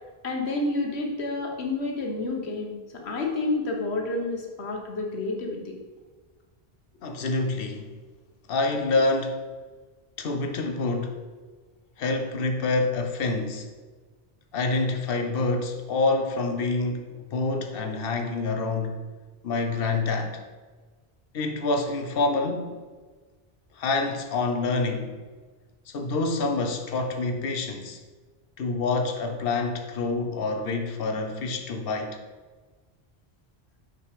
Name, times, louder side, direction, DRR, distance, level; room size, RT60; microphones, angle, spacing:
voice 1, 0.2-2.7 3.0-5.7, left 2 dB, 85° left, 1.3 m, -29 dB
voice 2, 7.0-7.9 8.5-9.4 10.2-11.2 12.0-13.7 14.5-19.0 19.4-20.4 21.3-22.8 23.8-25.1 25.9-28.0 28.6-32.2, left 3 dB, 65° left, 0.9 m, -27 dB
5.8 x 3.9 x 4.8 m
omnidirectional pair, 1.1 m